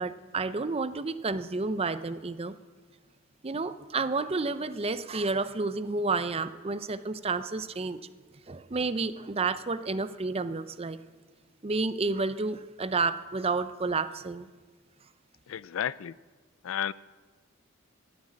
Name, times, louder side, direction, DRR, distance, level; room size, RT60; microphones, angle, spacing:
voice 1, 0.0-2.5 3.4-8.0 8.5-11.0 11.6-14.5, right 3 dB, 30° right, 13 dB, 0.6 m, -30 dB
voice 2, 15.5-16.1 16.6-16.9, left 9 dB, 70° left, 19 dB, 0.4 m, -32 dB
15.0 x 9.5 x 8.6 m, 1.4 s
head